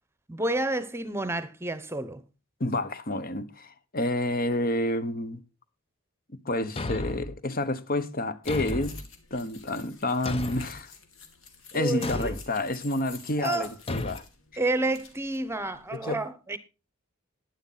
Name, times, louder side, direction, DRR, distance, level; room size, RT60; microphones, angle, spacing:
voice 1, 0.3-2.2 11.7-12.3 13.4-13.7 14.6-16.6, right 2 dB, 10° right, 0.9 m, -30 dB
voice 2, 2.6-5.4 6.4-9.0 9.3-10.9 11.7-14.2 14.5-14.6 16.0-16.2, left 1 dB, 45° left, 1.0 m, -29 dB
Thump thud, 6.8-7.4 8.5-9.1 10.3-10.8 12.0-12.4 13.9-14.2, left 2 dB, 25° left, 0.6 m, -33 dB
sound 1, 8.4-16.0, left 5 dB, 70° left, 2.5 m, -49 dB
11.0 x 10.5 x 4.1 m
head